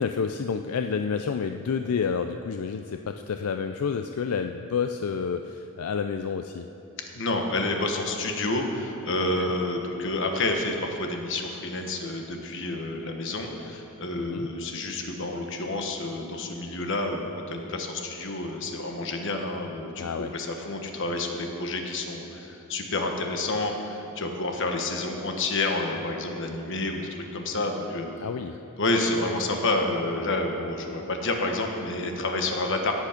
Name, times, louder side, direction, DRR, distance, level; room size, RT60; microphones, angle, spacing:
voice 1, 0.0-6.7 9.4-9.5 14.2-14.5 20.0-20.3 28.2-28.6, left 6 dB, 80° left, 7 dB, 0.4 m, -29 dB
voice 2, 7.1-28.1 28.8-32.9, left 2 dB, 55° left, 3 dB, 1.3 m, -29 dB
16.5 x 8.5 x 5.1 m, 2.9 s
head